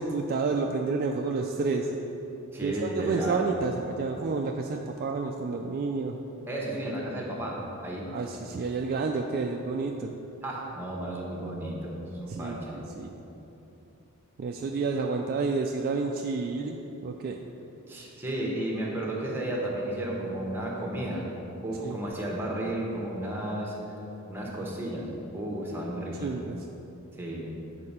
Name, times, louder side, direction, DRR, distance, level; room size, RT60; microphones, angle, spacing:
voice 1, 0.0-1.9 2.6-6.2 8.1-10.1 12.3-13.1 14.4-16.8 17.0-17.4 21.8-22.0 26.2-26.6, right 4 dB, 45° right, 3 dB, 0.3 m, -30 dB
voice 2, 2.5-3.4 6.5-8.1 10.4-12.8 17.9-21.2 21.6-23.8 24.3-26.3 27.2-27.5, right 1 dB, 10° right, -3 dB, 1.1 m, -33 dB
6.6 x 4.3 x 5.6 m, 3.0 s
head